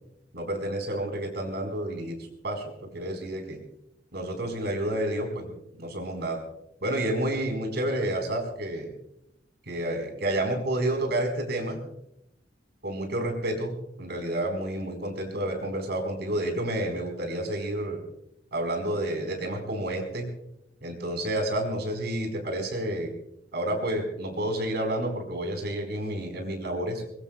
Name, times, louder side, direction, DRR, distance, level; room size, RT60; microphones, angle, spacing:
voice 1, 0.3-2.2 2.4-3.6 4.1-6.4 6.8-8.9 9.7-11.8 12.8-18.0 18.5-20.3 20.8-23.1 23.5-27.0, right 1 dB, 65° right, 4 dB, 4.7 m, -30 dB
23.5 x 22.5 x 2.4 m, 0.80 s
head